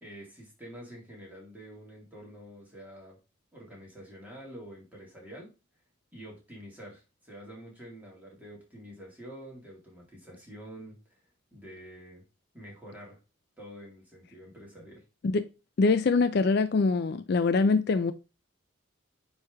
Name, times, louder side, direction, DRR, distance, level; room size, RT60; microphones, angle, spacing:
voice 1, 0.0-3.2 3.5-5.5 6.1-12.2 12.5-13.2 13.6-15.0, equal, 10° right, 2.2 m, -47 dB
voice 2, 15.8-18.1, left 4 dB, 50° left, 0.4 m, -24 dB
9.0 x 3.2 x 3.5 m
head